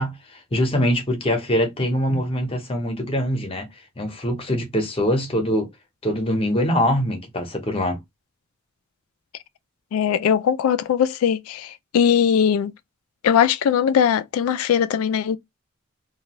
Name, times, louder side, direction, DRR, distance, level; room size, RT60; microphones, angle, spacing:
voice 1, 0.0-3.7 4.0-5.7 6.0-8.0, equal, 25° left, 0.8 m, -23 dB
voice 2, 9.9-12.7 13.2-15.4, left 8 dB, 90° left, 0.3 m, -20 dB
2.5 x 2.3 x 2.9 m
head